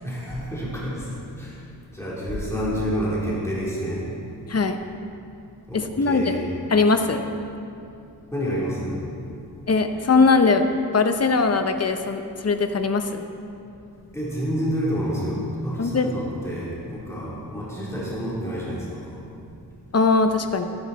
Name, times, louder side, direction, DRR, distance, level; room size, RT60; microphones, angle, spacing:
voice 1, 0.0-1.0 1.4-1.5 1.9-4.0 5.7-6.5 8.3-9.0 14.1-19.1, equal, 5° left, -8 dB, 3.3 m, -28 dB
voice 2, 4.5-4.8 5.7-6.3 6.7-7.2 9.7-10.7 10.9-13.2 15.8-16.1 19.9-20.6, left 4 dB, 40° left, 7 dB, 0.8 m, -20 dB
13.0 x 10.5 x 4.1 m, 2.6 s
wide cardioid pair, 90°, 40 cm